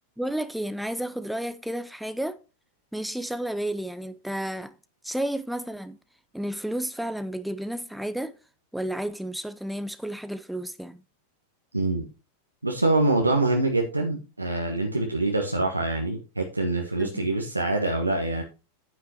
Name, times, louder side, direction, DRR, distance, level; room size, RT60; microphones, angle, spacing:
voice 1, 0.2-2.4 2.9-4.8 5.0-6.0 6.3-8.3 8.7-11.0 17.0-17.2, right 1 dB, ahead, 0.5 m, -32 dB
voice 2, 11.7-12.0 12.6-18.4, right 2 dB, 85° right, 1.2 m, -25 dB
9.3 x 8.1 x 2.9 m
figure-of-eight pair, 90°, 0 cm